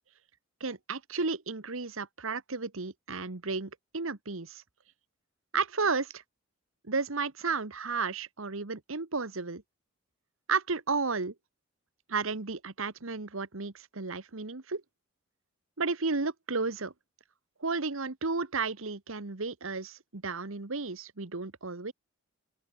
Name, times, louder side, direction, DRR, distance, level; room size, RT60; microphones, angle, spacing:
voice 1, 0.6-4.6 5.5-6.2 6.8-9.6 10.5-11.3 12.1-14.8 15.8-16.9 17.6-21.9, right 4 dB, 75° right, 1.4 m, -33 dB
open air
head